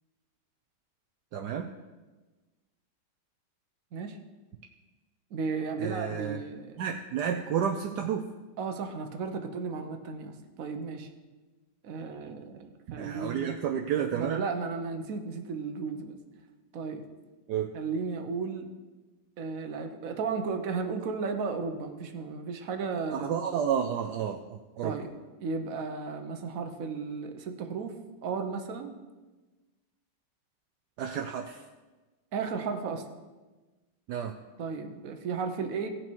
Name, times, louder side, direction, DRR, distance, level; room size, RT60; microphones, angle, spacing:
voice 1, 1.3-1.7 5.8-6.4 6.8-8.2 13.0-14.4 17.5-17.7 23.1-24.9 31.0-31.6 34.1-34.3, right 8 dB, 70° right, 3 dB, 1.2 m, -31 dB
voice 2, 5.3-6.8 8.6-11.1 11.8-13.6 14.1-16.2 16.7-17.0 17.7-18.7 19.4-23.4 24.8-25.1 25.4-27.9 28.2-28.9 32.3-33.0 34.6-35.9, right 5 dB, 55° right, 6 dB, 1.3 m, -34 dB
17.5 x 6.0 x 4.6 m, 1.2 s
omnidirectional pair, 1.9 m